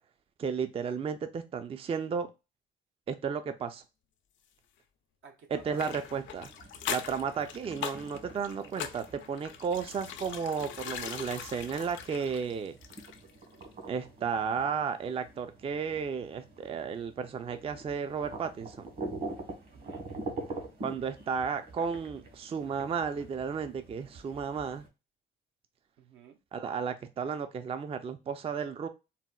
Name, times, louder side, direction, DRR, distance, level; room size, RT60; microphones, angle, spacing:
voice 1, 0.4-2.3 3.1-3.8 5.5-6.5 6.9-12.8 13.9-18.9 20.8-24.9 26.5-28.9, right 6 dB, 30° right, 0.3 m, -33 dB
voice 2, 5.2-6.0 8.5-8.9 19.7-20.1 20.4-20.7 26.0-26.4, right 7 dB, 75° right, 0.7 m, -54 dB
sound 1, 5.5-24.9, right 2 dB, 50° right, 1.2 m, -46 dB
sound 2, 5.8-13.4 13.6-13.7, left 8 dB, 75° left, 0.5 m, -41 dB
4.0 x 2.1 x 2.2 m
cardioid pair, 90°, 20 cm